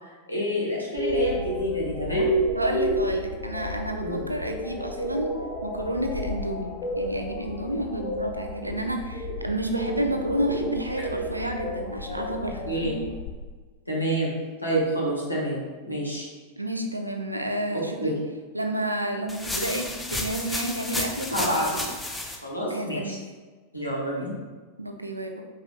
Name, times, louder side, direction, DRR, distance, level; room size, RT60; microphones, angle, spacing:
voice 1, 0.0-2.3 4.0-4.3 12.6-12.9 13.9-14.3 14.6-16.3 17.7-18.1 21.3-21.9 22.4-23.2 23.7-24.4, right 1 dB, 85° left, -4 dB, 1.2 m, -28 dB
sound 1, 1.0-13.3, equal, 45° left, 0.7 m, -30 dB
voice 2, 2.5-5.3 5.6-6.7 7.0-13.1 16.6-18.1 18.5-21.7 22.7-23.2 24.8-25.4, right 1 dB, 85° right, 4 dB, 0.4 m, -30 dB
sound 2, 19.3-22.4, left 2 dB, 10° left, 0.6 m, -32 dB
4.8 x 4.3 x 2.5 m, 1.4 s
figure-of-eight pair, 90°, 0 cm